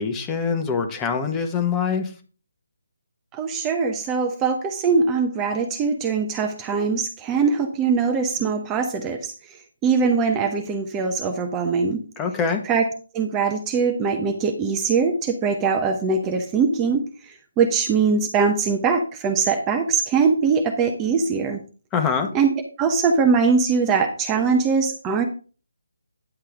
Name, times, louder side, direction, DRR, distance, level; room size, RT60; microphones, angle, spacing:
voice 1, 0.0-2.1 12.2-12.6 21.9-22.3, left 6 dB, 15° left, 6 dB, 1.3 m, -24 dB
voice 2, 3.3-9.3 9.8-12.0 12.6-12.9 13.1-17.0 17.6-21.6 22.3-22.5 22.8-25.3, right 5 dB, 15° right, 5 dB, 1.0 m, -21 dB
10.5 x 7.4 x 3.6 m, 0.37 s
figure-of-eight pair, 155°, 0 cm